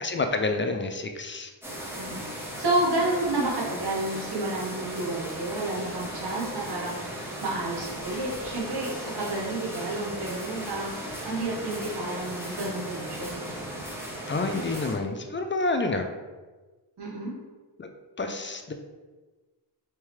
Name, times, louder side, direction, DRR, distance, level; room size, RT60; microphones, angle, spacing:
voice 1, 0.0-1.5 14.3-16.1 17.8-17.9 18.2-18.7, left 3 dB, 30° left, 5 dB, 0.4 m, -28 dB
sound 1, 1.6-15.0, right 1 dB, 5° right, 0.9 m, -37 dB
voice 2, 2.0-13.5 17.0-17.3, right 2 dB, 60° right, -5 dB, 1.1 m, -30 dB
3.6 x 3.4 x 3.2 m, 1.3 s
wide cardioid pair, 65°, 44 cm